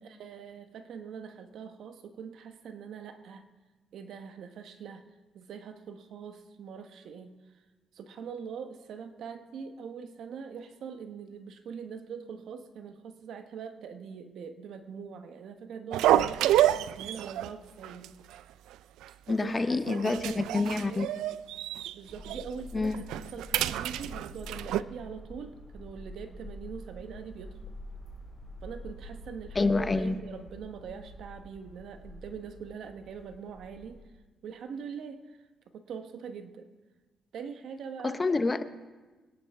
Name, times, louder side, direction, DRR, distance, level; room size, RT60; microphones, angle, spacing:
voice 1, 0.0-3.5 3.9-5.0 5.3-7.3 7.9-18.1 19.3-21.1 21.9-27.6 28.6-34.0 34.4-35.4 35.7-36.7 37.3-38.2, right 6 dB, 70° right, 8 dB, 1.1 m, -42 dB
sound 1, 15.9-17.5 17.8-18.1 18.3-18.4 19.0-19.5 19.9-21.9 22.2-22.4 22.9-24.8, right 13 dB, 90° right, 0.3 m, -28 dB
voice 2, 19.3-21.1 22.7-22.9 29.6-30.2 38.0-38.9, left 3 dB, 25° left, 11 dB, 0.7 m, -28 dB
sound 2, 22.1-34.0, left 1 dB, 10° right, 4.0 m, -46 dB
23.5 x 10.0 x 3.5 m, 1.3 s
cardioid pair, 90°, 0 cm